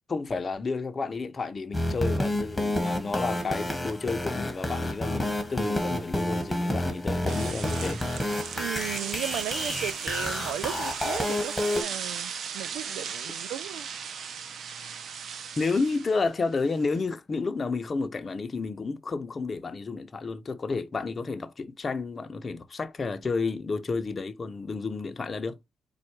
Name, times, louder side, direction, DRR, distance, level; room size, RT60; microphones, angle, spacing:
voice 1, 0.1-8.0 15.6-25.6, left 4 dB, 40° left, 0.8 m, -31 dB
sound 1, 1.7-11.8, left 1 dB, 10° left, 1.6 m, -30 dB
sound 2, 7.3-17.0, right 6 dB, 65° right, 0.8 m, -37 dB
voice 2, 8.6-13.9, right 12 dB, 85° right, 0.4 m, -36 dB
4.4 x 2.5 x 4.3 m
supercardioid pair, 65°, 0 cm